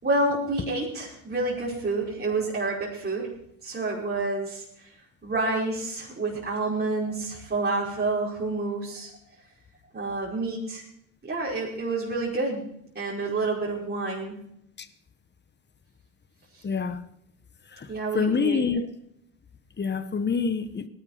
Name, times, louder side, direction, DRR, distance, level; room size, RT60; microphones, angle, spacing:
voice 1, 0.0-3.3 3.6-4.9 5.2-9.1 9.9-10.8 11.2-12.6 13.0-14.4 17.9-18.6, right 2 dB, 20° right, 5.2 m, -28 dB
voice 2, 16.6-17.0 17.8-17.9 18.1-18.8 19.8-20.9, left 5 dB, 25° left, 1.4 m, -26 dB
18.5 x 11.0 x 4.1 m
hypercardioid pair, 75°, 46 cm